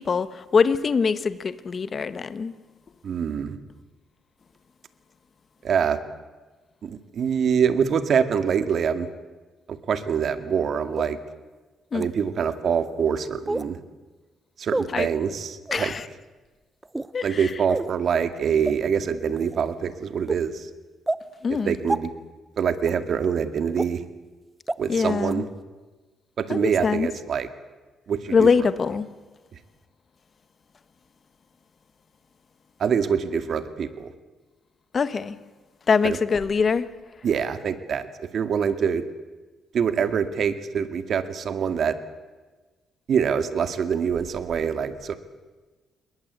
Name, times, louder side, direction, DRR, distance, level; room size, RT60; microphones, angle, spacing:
voice 1, 0.0-2.5 11.9-12.1 14.9-15.1 15.7-16.1 17.1-17.5 21.4-21.8 24.9-25.5 26.5-27.1 28.3-29.1 34.9-35.4 35.9-36.9, left 5 dB, 35° left, 1.3 m, -23 dB
voice 2, 3.0-3.6 5.6-6.0 6.8-9.1 9.7-11.2 11.9-13.8 14.6-15.9 17.2-20.7 21.5-22.1 22.6-24.0 24.8-25.4 26.4-27.5 28.1-28.5 32.8-34.1 36.0-36.2 37.2-39.0 39.7-41.9 43.1-45.2, right 7 dB, 55° right, 2.1 m, -25 dB
sound 1, 11.0-11.1 12.0-12.1 13.5-13.7 14.7-14.9 15.7-15.9 16.8-17.1 17.7-17.9 18.6-18.7 19.4-19.6 20.3-20.4 21.1-21.2 21.9-22.0 22.8-22.9 23.8-23.9 24.7-24.8 25.3-25.4, right 2 dB, 10° right, 0.9 m, -27 dB
28.0 x 22.0 x 8.2 m
cardioid pair, 125°, 0 cm